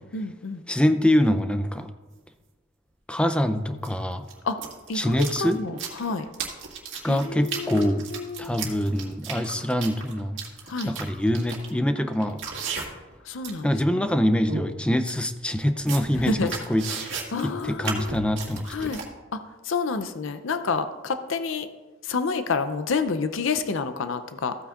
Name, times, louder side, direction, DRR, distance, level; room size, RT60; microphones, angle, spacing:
voice 1, 0.0-0.6 4.4-4.6 4.9-6.3 7.0-8.5 10.7-10.9 13.2-13.7 16.2-16.5 17.3-18.2 18.7-19.0 19.3-19.4 19.6-21.7 22.0-24.6, left 4 dB, 70° left, 10 dB, 0.5 m, -29 dB
voice 2, 0.7-1.9 3.1-4.3 4.9-5.6 7.0-8.1 8.4-10.4 10.8-12.4 13.6-17.1 17.4-18.9, left 1 dB, 5° left, 9 dB, 0.4 m, -24 dB
sound 1, 1.8-1.9 3.8-3.9 4.2-13.1 13.4-13.7 14.1-14.2 14.5-14.7 15.1-15.2 15.6-19.1, right 5 dB, 60° right, 2.0 m, -35 dB
15.0 x 8.7 x 2.4 m, 1.2 s
head